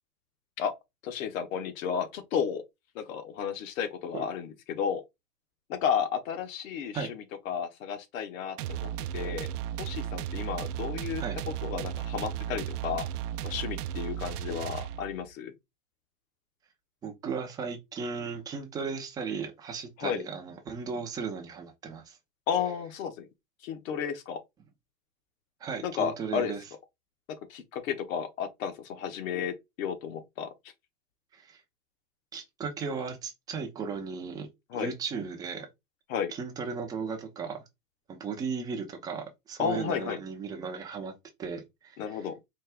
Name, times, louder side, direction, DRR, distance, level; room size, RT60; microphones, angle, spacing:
voice 1, 1.0-2.6 2.9-5.0 5.7-9.5 9.8-13.1 13.4-15.5 20.0-20.2 22.5-23.3 23.6-24.4 25.8-26.5 27.5-30.5 34.7-34.9 36.1-36.3 39.6-40.2 42.0-42.3, left 7 dB, 55° left, 1.1 m, -33 dB
sound 1, 8.6-15.3, right 10 dB, 75° right, 0.5 m, -35 dB
voice 2, 17.0-22.2 25.6-26.6 31.4-31.6 32.3-34.5 34.8-35.7 36.4-37.6 38.1-41.1 41.4-42.0, right 5 dB, 10° right, 0.4 m, -36 dB
4.3 x 2.4 x 3.3 m
hypercardioid pair, 125°, 47 cm